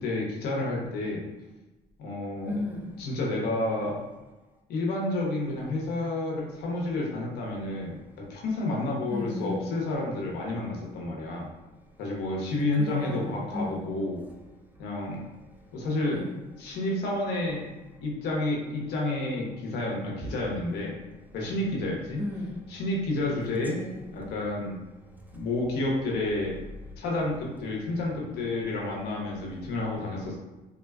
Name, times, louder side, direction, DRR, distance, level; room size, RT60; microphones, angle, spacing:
voice 1, 0.0-1.2 2.0-2.6 3.0-4.0 4.7-11.5 12.0-14.2 14.8-15.2 15.7-16.2 16.6-17.6 18.0-20.9 21.3-22.2 22.7-23.8 24.1-24.8 25.3-26.5 27.0-30.4, left 2 dB, 75° left, 0.9 m, -30 dB
voice 2, 2.5-2.9 9.1-9.6 12.8-13.9 16.1-16.4 22.2-22.6 23.5-24.3, left 1 dB, 10° right, 0.4 m, -35 dB
3.6 x 2.2 x 2.3 m
cardioid pair, 110°, 17 cm